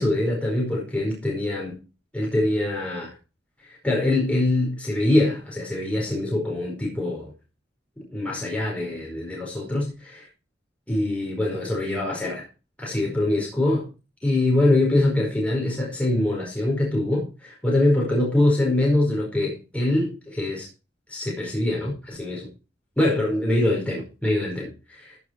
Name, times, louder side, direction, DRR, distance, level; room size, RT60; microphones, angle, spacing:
voice 1, 0.0-1.8 2.1-3.1 3.6-7.3 8.1-10.3 10.9-12.4 12.8-13.9 14.2-20.7 21.1-22.5 23.0-25.0, left 1 dB, 5° left, 4.7 m, -24 dB
15.0 x 6.4 x 4.6 m
head